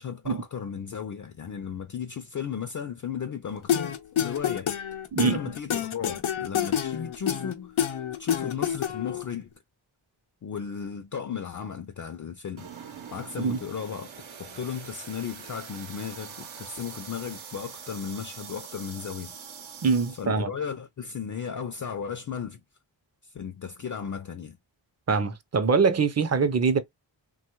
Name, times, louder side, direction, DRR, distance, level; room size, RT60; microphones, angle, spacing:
voice 1, 0.0-4.8 5.2-7.8 8.2-9.5 10.4-12.7 13.1-14.1 14.4-19.3 20.2-22.6 23.2-24.6, left 7 dB, 45° left, 0.4 m, -35 dB
sound 1, 3.7-9.2, left 9 dB, 85° left, 0.7 m, -28 dB
sound 2, 12.6-20.3, right 7 dB, 80° right, 0.8 m, -43 dB
voice 2, 19.8-20.5 25.1-26.8, right 5 dB, 35° right, 0.5 m, -23 dB
2.9 x 2.2 x 3.0 m
wide cardioid pair, 75°, 47 cm